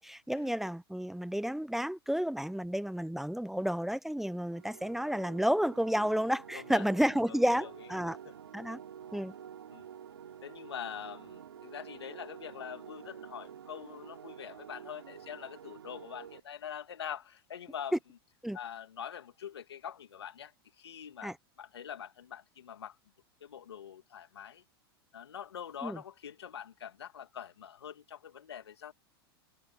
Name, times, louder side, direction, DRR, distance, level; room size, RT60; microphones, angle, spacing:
voice 1, 0.0-8.2 8.5-8.8 9.1-9.3 18.4-18.6 21.2-21.3 25.8-26.0, equal, ahead, 1.0 m, -31 dB
sound 1, 4.5-16.4, right 9 dB, 80° right, 3.6 m, -49 dB
voice 2, 6.5-7.7 8.0-8.3 9.7-9.9 10.4-18.0 18.5-23.0 23.4-24.6 25.1-28.9, left 8 dB, 85° left, 2.7 m, -44 dB
hypercardioid pair, 95°, 13 cm